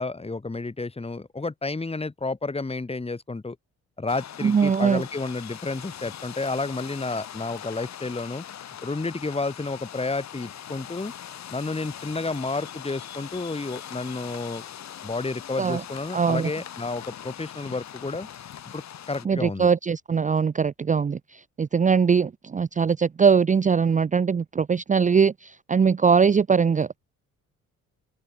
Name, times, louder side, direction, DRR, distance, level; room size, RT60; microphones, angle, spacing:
voice 1, 0.0-3.6 4.0-8.4 8.8-11.1 11.5-14.6 15.0-18.3 18.7-18.8 19.1-19.7, left 3 dB, 20° left, 5.0 m, -31 dB
sound 1, 4.1-19.3, left 10 dB, 65° left, 4.9 m, -41 dB
voice 2, 4.4-5.0 15.6-15.8 16.1-16.5 19.3-21.2 21.6-27.0, right 6 dB, 25° right, 0.6 m, -21 dB
open air
cardioid pair, 90°, 30 cm